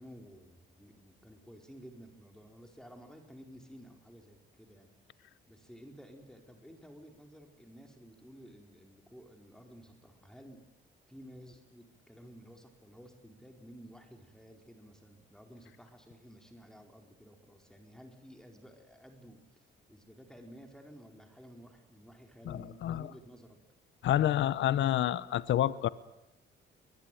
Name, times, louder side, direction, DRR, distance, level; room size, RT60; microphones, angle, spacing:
voice 1, 0.0-4.9 5.5-10.6 11.1-23.6, equal, 5° left, 4 dB, 4.4 m, -53 dB
voice 2, 22.5-23.1 24.0-25.9, left 12 dB, 70° left, 17 dB, 0.9 m, -28 dB
23.0 x 20.5 x 9.3 m, 0.91 s
cardioid pair, 90°, 20 cm